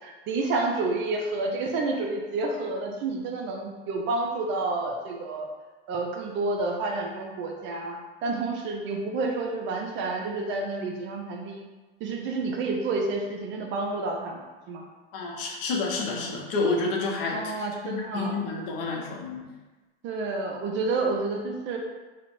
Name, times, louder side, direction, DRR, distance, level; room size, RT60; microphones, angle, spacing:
voice 1, 0.0-5.4 5.9-11.7 12.0-14.9 17.3-18.4 20.0-21.8, right 3 dB, 40° right, 1 dB, 0.4 m, -29 dB
voice 2, 15.1-17.5 17.8-19.4, left 3 dB, 60° left, -1 dB, 0.7 m, -29 dB
2.9 x 2.1 x 2.5 m, 1.2 s
hypercardioid pair, 80°, 31 cm